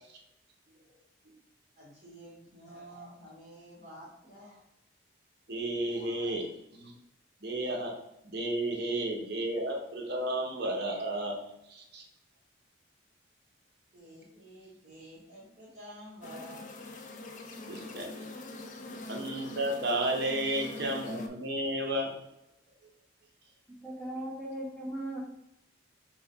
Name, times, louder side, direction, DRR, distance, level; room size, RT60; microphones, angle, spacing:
voice 1, 1.8-4.6 5.8-6.4 13.9-16.6, equal, 40° right, -8 dB, 1.4 m, -50 dB
voice 2, 5.5-6.4 6.7-6.9 7.4-7.9 8.2-11.4 11.7-12.0 17.7-18.3 19.1-22.1, right 1 dB, 55° right, 0 dB, 0.8 m, -32 dB
sound 1, 16.2-21.3, left 2 dB, 40° left, 0.4 m, -43 dB
voice 3, 23.7-25.2, right 1 dB, 5° left, -4 dB, 1.1 m, -38 dB
4.8 x 2.2 x 3.9 m, 0.85 s
head